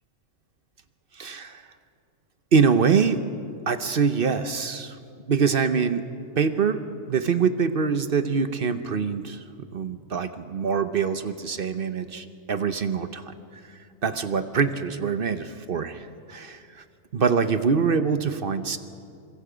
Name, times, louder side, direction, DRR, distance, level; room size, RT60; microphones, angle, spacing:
voice 1, 1.1-1.6 2.5-3.2 3.7-5.0 5.3-6.0 6.4-6.8 7.1-9.4 9.7-13.3 13.7-16.8 17.1-18.8, right 5 dB, 50° right, 11 dB, 0.9 m, -24 dB
25.5 x 23.0 x 5.1 m, 2.4 s
omnidirectional pair, 1.4 m